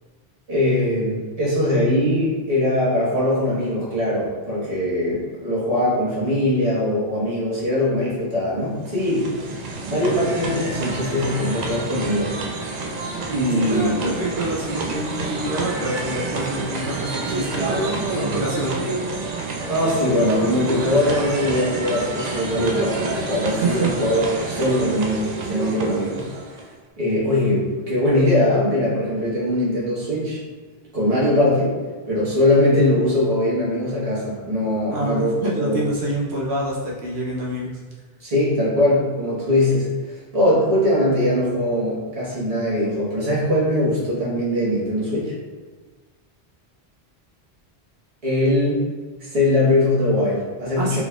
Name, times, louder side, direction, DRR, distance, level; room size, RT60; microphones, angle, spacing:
voice 1, 0.5-9.3 9.9-12.4 13.3-14.1 19.7-26.2 27.0-30.4 30.9-31.8 32.1-35.3 35.6-35.8 38.2-45.3 48.2-48.8 49.2-51.0, left 1 dB, 35° right, -8 dB, 1.3 m, -21 dB
sound 1, 8.7-26.8, right 3 dB, 55° right, 0.5 m, -28 dB
voice 2, 13.7-18.8 23.5-23.9 34.9-37.7 50.8-51.0, right 2 dB, 80° right, -4 dB, 0.9 m, -26 dB
4.0 x 3.4 x 2.3 m, 1.4 s
omnidirectional pair, 1.1 m